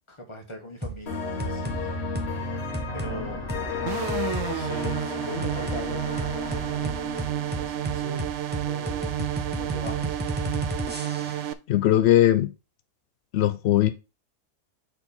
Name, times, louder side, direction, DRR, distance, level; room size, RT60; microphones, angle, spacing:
voice 1, 0.1-2.0 2.9-3.9 4.4-6.4 7.5-8.3 8.6-10.3, equal, 20° left, 1.6 m, -40 dB
sound 1, 0.8-1.0 1.4-1.8 2.1-2.3 2.7-3.1 3.5-3.6 4.1-4.5 4.8-5.0 5.4-5.8 6.2-11.5, right 1 dB, 10° right, 0.5 m, -33 dB
sound 2, 1.1-8.7, left 4 dB, 45° left, 1.5 m, -33 dB
sound 3, 3.9-11.5, right 11 dB, 70° right, 0.7 m, -30 dB
voice 2, 11.7-12.5 13.3-13.9, left 13 dB, 90° left, 0.5 m, -19 dB
6.2 x 4.5 x 4.3 m
omnidirectional pair, 1.7 m